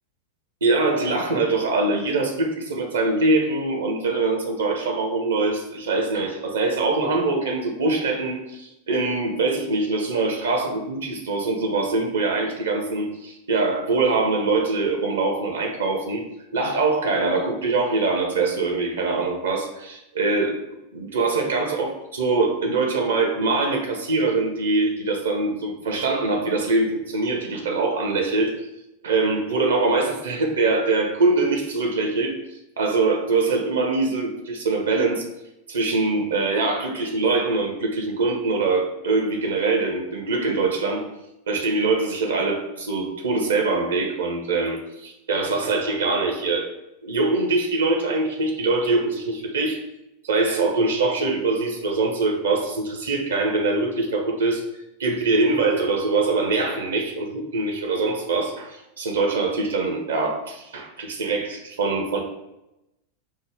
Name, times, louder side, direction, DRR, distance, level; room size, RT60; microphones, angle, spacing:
voice 1, 0.6-16.2 16.5-20.5 20.9-28.5 29.0-32.4 32.8-35.2 35.7-41.0 41.5-46.7 47.0-49.8 50.2-54.6 55.0-62.2, right 3 dB, 65° right, 3 dB, 0.7 m, -23 dB
5.3 x 2.1 x 3.4 m, 0.91 s
figure-of-eight pair, 90°, 0 cm